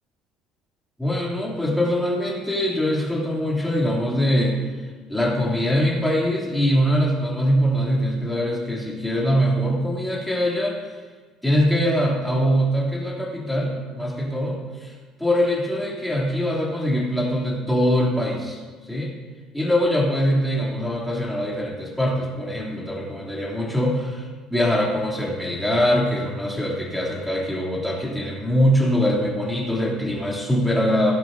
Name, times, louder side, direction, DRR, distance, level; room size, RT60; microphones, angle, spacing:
voice 1, 1.0-4.7 5.1-11.0 11.4-14.9 15.2-19.1 19.5-31.1, equal, 5° left, -5 dB, 2.8 m, -23 dB
17.0 x 11.5 x 2.7 m, 1.4 s
cardioid pair, 165°, 0 cm